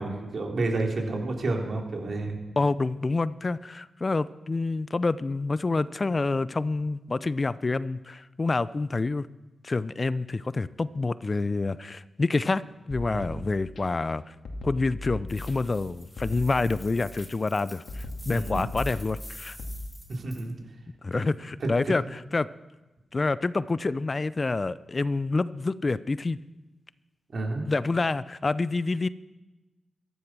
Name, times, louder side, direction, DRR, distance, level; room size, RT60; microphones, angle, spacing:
voice 1, 0.0-2.4 13.1-13.4 18.3-18.7 20.1-20.6 21.1-21.2 21.6-21.9 27.3-27.6, right 2 dB, 65° right, 1 dB, 3.7 m, -30 dB
voice 2, 2.6-9.3 9.6-12.6 12.9-14.3 14.6-19.6 21.0-22.0 22.3-22.5 23.1-26.4 27.7-29.1, left 3 dB, 40° left, 17 dB, 0.6 m, -27 dB
sound 1, 12.9-13.8 14.5-15.8 16.2-17.2 17.9-19.8, left 1 dB, 75° left, 2.3 m, -38 dB
sound 2, 15.3-20.4, left 1 dB, 15° left, 3.6 m, -48 dB
14.5 x 12.0 x 6.2 m, 1.1 s
supercardioid pair, 45°, 0 cm